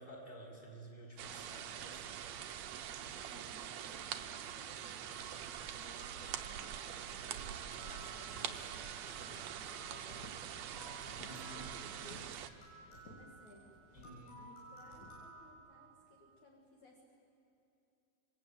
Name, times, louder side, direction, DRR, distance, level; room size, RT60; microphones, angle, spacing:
voice 1, 0.0-2.2 11.1-11.7 13.9-14.5, equal, 10° left, -3 dB, 4.6 m, -52 dB
sound 1, 1.2-12.5, right 9 dB, 85° right, 1.5 m, -44 dB
voice 2, 3.0-13.8 14.4-17.2, left 1 dB, 55° left, -2 dB, 3.6 m, -61 dB
sound 2, 4.9-15.5, right 1 dB, 85° left, 8.3 m, -57 dB
sound 3, 8.2-15.3, equal, 30° left, 1.9 m, -57 dB
27.0 x 23.0 x 8.7 m, 2.7 s
omnidirectional pair, 4.4 m